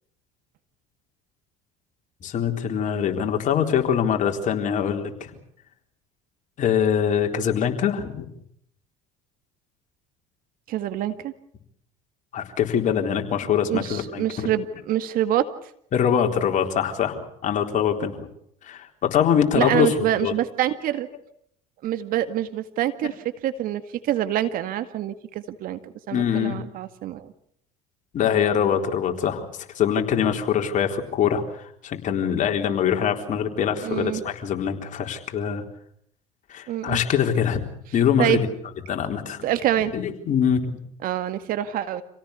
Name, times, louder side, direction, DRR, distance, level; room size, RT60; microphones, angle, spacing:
voice 1, 2.2-5.3 6.6-8.3 12.3-14.5 15.9-18.3 18.7-20.3 26.1-26.6 28.1-29.5 29.7-35.6 36.5-38.4 38.9-39.4 39.9-40.7, left 8 dB, 50° left, 4 dB, 4.1 m, -23 dB
voice 2, 10.7-11.3 13.7-15.5 19.6-21.1 21.8-23.2 23.4-27.3 33.8-34.2 36.7-37.0 38.2-38.4 39.4-39.9 41.0-42.0, right 12 dB, 60° right, 11 dB, 1.9 m, -26 dB
27.0 x 17.5 x 8.4 m, 0.69 s
hypercardioid pair, 75°, 17 cm